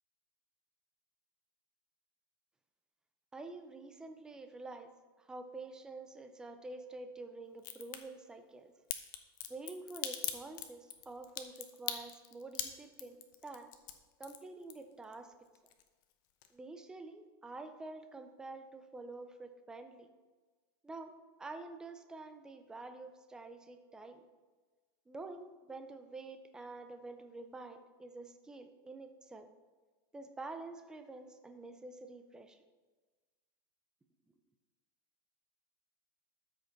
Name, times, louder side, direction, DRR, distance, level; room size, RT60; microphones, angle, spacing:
voice 1, 3.3-4.9 5.2-8.7 9.5-13.7 14.2-15.3 16.5-20.1 20.8-21.1 21.4-24.3 25.1-29.5 30.1-32.6, right 3 dB, 5° right, 7 dB, 0.4 m, -48 dB
Crack, 7.6-8.0 8.9-15.1 15.5-16.1 16.4-16.5, left 11 dB, 55° left, 0.8 m, -40 dB
12.5 x 5.2 x 3.9 m, 1.3 s
supercardioid pair, 165°, 13 cm